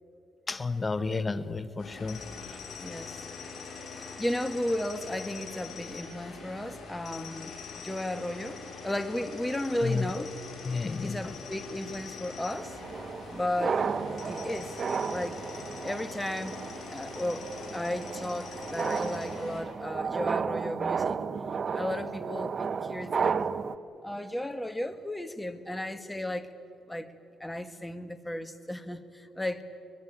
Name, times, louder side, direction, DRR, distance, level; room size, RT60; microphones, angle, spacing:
voice 1, 0.5-2.6 9.8-10.3 10.6-11.3, left 4 dB, 30° left, 14 dB, 1.2 m, -32 dB
Road Works, 1.8-19.6, left 4 dB, 55° left, 7.6 m, -43 dB
voice 2, 2.8-3.1 3.9-10.3 11.0-12.8 13.3-13.8 14.3-14.8 15.1-15.6 15.8-21.4 21.7-23.7 24.0-26.5 26.9-27.1 27.4-29.6, left 1 dB, 10° left, 11 dB, 1.7 m, -34 dB
sound 1, 12.5-23.8, right 6 dB, 50° right, 0.8 m, -33 dB
23.5 x 21.0 x 8.9 m, 2.5 s
supercardioid pair, 65°, 0 cm